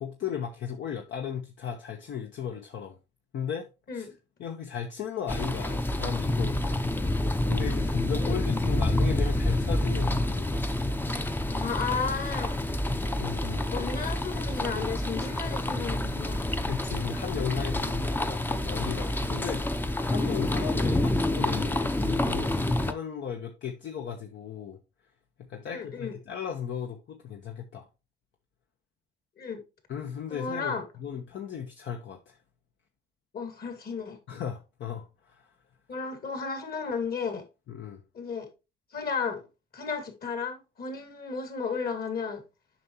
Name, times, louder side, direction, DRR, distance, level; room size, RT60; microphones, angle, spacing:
voice 1, 0.0-3.0 3.3-3.7 3.9-4.1 4.4-6.7 7.5-10.7 13.2-13.7 16.7-24.8 25.5-27.9 29.9-32.4 34.3-35.5 37.7-38.0, left 8 dB, 70° left, 1.1 m, -36 dB
sound 1, 5.3-22.9, left 1 dB, 10° left, 0.6 m, -28 dB
voice 2, 11.5-12.6 13.6-16.4 25.7-26.1 29.4-29.6 30.3-30.8 33.3-34.2 35.9-37.5 38.1-38.5 38.9-39.4 39.7-42.4, left 5 dB, 50° left, 2.4 m, -33 dB
7.5 x 5.6 x 3.0 m
cardioid pair, 90°, 20 cm